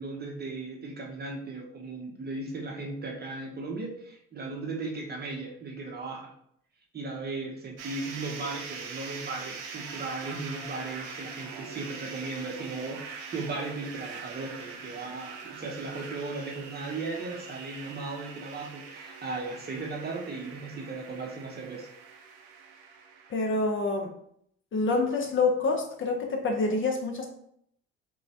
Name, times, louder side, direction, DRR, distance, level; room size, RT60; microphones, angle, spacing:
voice 1, 0.0-6.3 6.9-21.9, right 3 dB, 30° right, 0 dB, 0.7 m, -37 dB
sound 1, 7.8-23.3, right 5 dB, 70° right, 0.6 m, -43 dB
voice 2, 23.3-24.1 24.7-27.3, left 3 dB, 35° left, 2 dB, 0.6 m, -27 dB
3.0 x 2.3 x 2.7 m, 0.69 s
hypercardioid pair, 50°, 34 cm